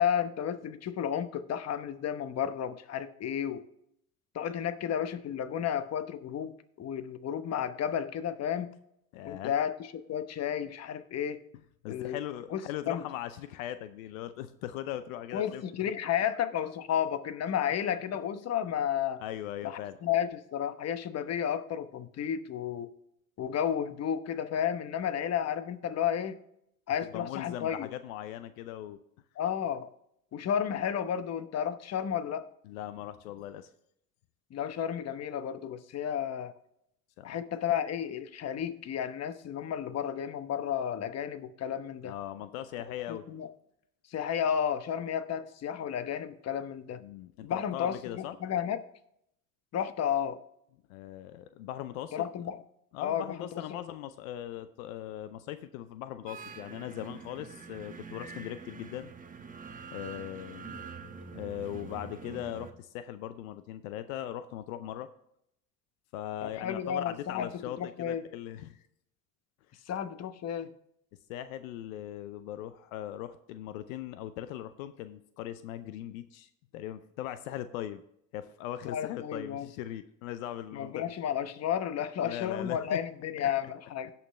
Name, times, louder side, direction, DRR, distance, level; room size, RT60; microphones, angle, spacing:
voice 1, 0.0-3.6 4.3-8.7 9.2-11.4 11.9-12.2 12.5-12.6 12.9-13.0 15.3-19.2 19.6-22.9 23.4-26.4 26.9-27.9 29.4-29.9 30.3-32.5 34.5-36.5 37.2-42.1 43.1-43.5 44.1-47.0 47.4-48.8 49.7-50.4 52.1-52.6 53.0-53.8 66.4-67.5 67.8-68.2 69.9-70.7 78.9-79.7 80.7-84.1, left 9 dB, 40° left, 11 dB, 1.0 m, -32 dB
voice 2, 9.1-9.5 11.8-15.6 19.2-20.0 27.1-29.0 32.6-33.7 37.2-37.4 42.0-43.3 47.0-48.4 50.9-52.3 52.9-59.1 59.9-60.8 61.3-65.1 66.1-68.8 71.3-78.0 78.3-81.1 82.2-83.0 83.4-83.5, left 12 dB, 80° left, 12 dB, 0.7 m, -39 dB
sound 1, 56.3-62.7, right 5 dB, 20° right, 1.1 m, -45 dB
17.0 x 5.8 x 3.2 m, 0.75 s
hypercardioid pair, 85°, 41 cm